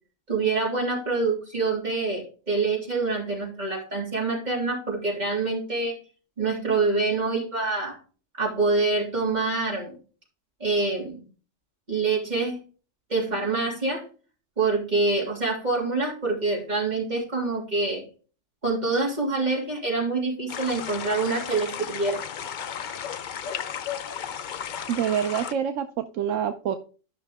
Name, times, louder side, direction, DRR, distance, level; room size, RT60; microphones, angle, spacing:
voice 1, 0.3-6.0 6.4-8.0 8.3-10.0 10.6-11.2 11.9-12.6 13.1-14.0 14.6-18.0 18.6-22.2, right 3 dB, 35° right, -3 dB, 3.3 m, -26 dB
sound 1, 20.5-25.5, left 8 dB, 55° left, 0.6 m, -34 dB
voice 2, 24.9-26.8, right 9 dB, 75° right, 8 dB, 1.0 m, -26 dB
12.0 x 5.8 x 3.4 m, 0.37 s
omnidirectional pair, 1.3 m